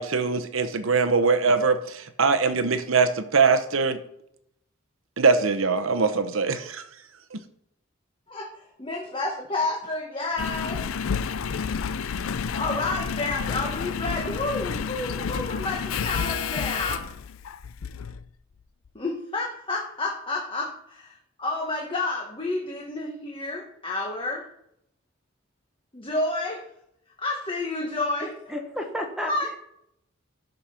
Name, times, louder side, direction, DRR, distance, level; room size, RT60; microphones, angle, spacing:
voice 1, 0.0-4.0 5.2-6.8 7.3-7.4, right 4 dB, 80° right, 10 dB, 0.9 m, -22 dB
voice 2, 8.8-10.8 12.5-17.1 18.9-24.4 25.9-26.6 27.2-28.5 29.2-29.5, left 2 dB, 25° left, 0 dB, 1.4 m, -30 dB
Engine, 10.4-18.2 18.8-18.9, left 6 dB, 90° left, 0.5 m, -30 dB
voice 3, 28.2-29.6, equal, 5° right, 3 dB, 1.2 m, -33 dB
13.0 x 5.2 x 5.9 m, 0.76 s
head